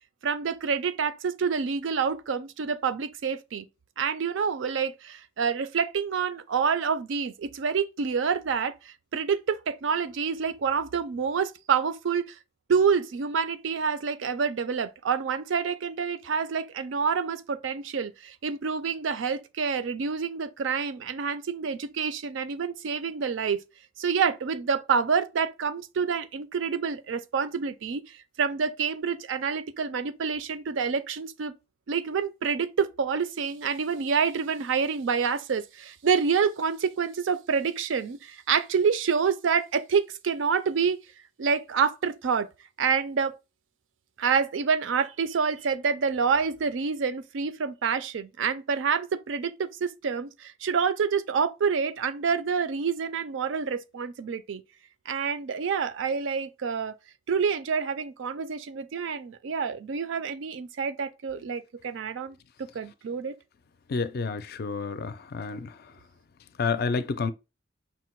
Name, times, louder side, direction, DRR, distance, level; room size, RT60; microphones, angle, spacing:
voice 1, 0.2-3.7 4.0-12.3 12.7-23.6 24.0-31.5 31.9-41.0 41.4-42.5 42.8-43.4 44.2-54.6 55.1-56.9 57.3-62.4 62.7-63.4, right 6 dB, 75° right, 0.4 m, -27 dB
voice 2, 63.9-65.7 66.6-67.3, left 4 dB, 55° left, 0.4 m, -29 dB
5.7 x 2.1 x 4.4 m
head